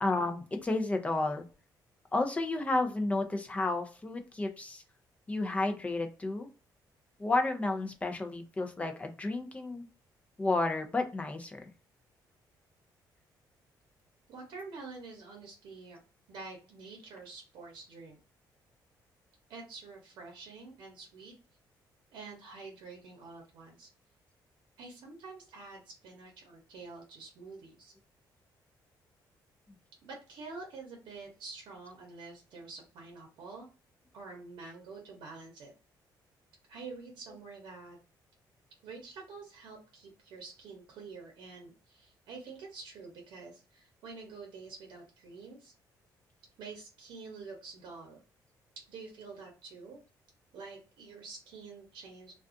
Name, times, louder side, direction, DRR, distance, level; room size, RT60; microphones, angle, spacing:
voice 1, 0.0-1.5 2.1-4.8 5.3-6.5 7.2-9.9 10.4-11.6, left 2 dB, 15° left, 5 dB, 0.5 m, -31 dB
voice 2, 14.3-16.0 16.3-18.2 19.5-21.3 22.1-23.9 24.8-27.9 30.0-33.7 34.1-35.7 36.7-38.0 38.8-45.7 46.6-48.2 48.8-50.0 50.5-52.3, right 4 dB, 80° right, 1 dB, 0.8 m, -47 dB
2.4 x 2.3 x 2.5 m, 0.34 s
cardioid pair, 130°, 8 cm